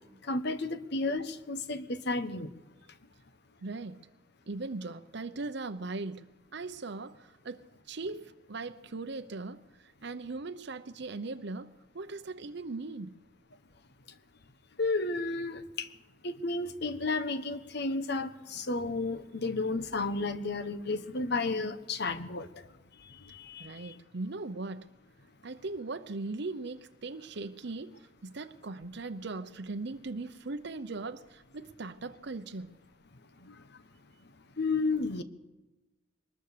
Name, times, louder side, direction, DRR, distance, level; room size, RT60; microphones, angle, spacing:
voice 1, 0.3-2.5 14.8-15.9 16.2-22.5 23.3-23.7 34.6-35.2, left 3 dB, 60° left, 1.3 m, -32 dB
voice 2, 3.6-4.0 4.5-13.2 23.6-24.9 25.4-28.0 28.2-32.8, right 3 dB, 65° right, 0.8 m, -39 dB
22.5 x 20.0 x 6.8 m
head